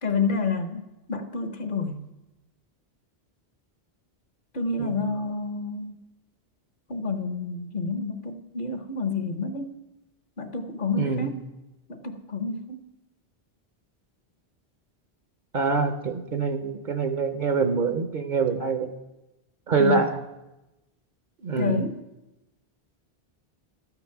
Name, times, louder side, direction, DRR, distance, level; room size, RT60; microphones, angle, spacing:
voice 1, 0.0-0.8 1.1-2.0 4.5-6.0 6.9-9.8 10.4-11.4 11.9-12.8 19.8-20.1 21.6-22.0, left 4 dB, 55° left, 8 dB, 1.0 m, -29 dB
voice 2, 11.0-11.3 15.5-18.9 19.7-20.2 21.4-21.8, right 5 dB, 55° right, 9 dB, 0.8 m, -25 dB
13.0 x 6.0 x 5.7 m, 0.99 s
omnidirectional pair, 1.0 m